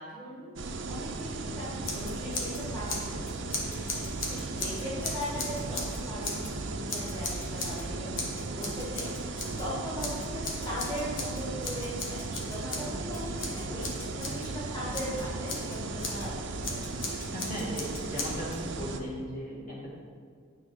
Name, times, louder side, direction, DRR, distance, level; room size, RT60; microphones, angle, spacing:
voice 1, 0.0-12.0 12.3-16.8, equal, 20° left, -9 dB, 1.9 m, -39 dB
sound 1, 0.6-19.0, right 3 dB, 65° right, 0.6 m, -36 dB
Scissors, 1.8-2.6 2.9-6.5 6.9-7.9 8.2-9.7 10.0-14.5 14.9-16.3 16.6-18.6, left 3 dB, 80° left, 1.2 m, -37 dB
voice 2, 17.3-19.9, equal, 40° left, -7 dB, 2.1 m, -37 dB
9.7 x 3.8 x 5.9 m, 2.1 s
head